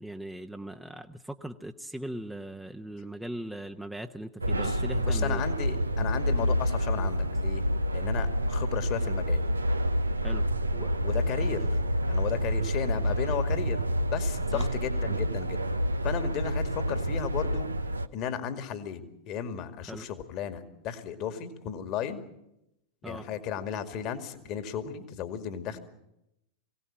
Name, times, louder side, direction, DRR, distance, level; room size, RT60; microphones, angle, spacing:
voice 1, 0.0-5.4 10.2-10.4 14.5-14.7 19.9-20.0 23.0-23.2, right 1 dB, ahead, 4 dB, 0.9 m, -39 dB
sound 1, 4.4-18.1, equal, 90° right, 0.7 m, -28 dB
voice 2, 4.6-7.6 7.9-9.4 10.7-11.8 12.1-13.8 14.1-15.6 16.0-17.7 18.1-22.2 23.0-25.8, left 8 dB, 45° left, 8 dB, 2.3 m, -35 dB
22.5 x 17.5 x 8.9 m, 0.85 s
figure-of-eight pair, 90°, 0 cm